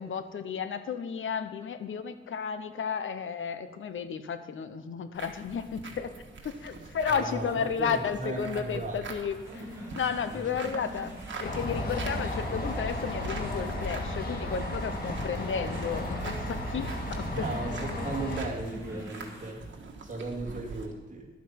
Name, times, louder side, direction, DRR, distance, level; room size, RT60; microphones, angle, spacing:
voice 1, 0.0-6.1 6.4-9.6 9.9-11.1 11.4-17.5, left 7 dB, 85° left, 10 dB, 0.8 m, -33 dB
sound 1, 5.1-20.9, right 3 dB, 70° right, 1.6 m, -44 dB
voice 2, 7.1-9.0 10.3-10.5 17.3-19.7 20.0-21.3, right 2 dB, 40° right, -1 dB, 2.3 m, -36 dB
sound 2, 9.4-19.5, equal, 15° right, 4.3 m, -46 dB
sound 3, 11.4-18.4, left 1 dB, 50° left, 1.9 m, -34 dB
11.5 x 8.6 x 5.7 m, 1.4 s
wide cardioid pair, 170°, 20 cm